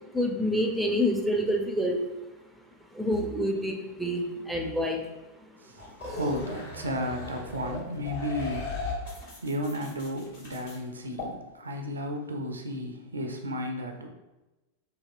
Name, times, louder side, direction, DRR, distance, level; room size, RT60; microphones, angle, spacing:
voice 1, 0.1-2.0 2.9-5.0, equal, ahead, 2 dB, 0.4 m, -27 dB
voice 2, 5.6-8.7 9.4-14.1, equal, 75° right, 4 dB, 0.3 m, -33 dB
sound 1, 5.8-10.8 11.2-11.3, left 3 dB, 55° left, 1.2 m, -37 dB
2.7 x 2.7 x 2.5 m, 1.0 s
figure-of-eight pair, 90°, 0 cm